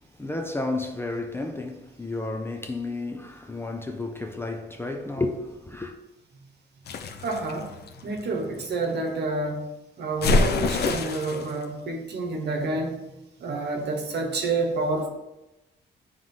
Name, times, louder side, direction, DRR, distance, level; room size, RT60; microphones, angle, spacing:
voice 1, 0.2-5.9, left 2 dB, 10° left, 0.5 m, -32 dB
sound 1, 6.9-8.7 10.2-11.5, left 3 dB, 60° left, 0.6 m, -26 dB
voice 2, 7.2-7.7 8.0-9.7 10.0-13.0 13.4-15.1, right 3 dB, 65° right, 1.2 m, -28 dB
9.1 x 3.2 x 3.8 m
wide cardioid pair, 135°, 19 cm